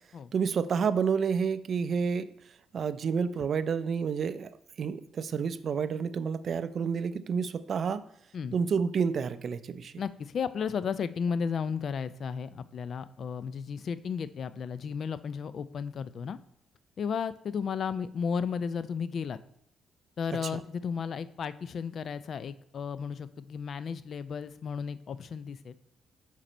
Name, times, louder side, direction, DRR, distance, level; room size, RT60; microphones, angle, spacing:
voice 1, 0.3-2.3 2.7-4.5 4.8-8.0 8.5-9.9 20.4-20.5, right 6 dB, 55° right, 13 dB, 0.3 m, -29 dB
voice 2, 10.0-16.4 17.0-19.4 20.2-25.8, left 6 dB, 55° left, 14 dB, 0.4 m, -34 dB
5.4 x 5.0 x 4.3 m, 0.76 s
cardioid pair, 90°, 0 cm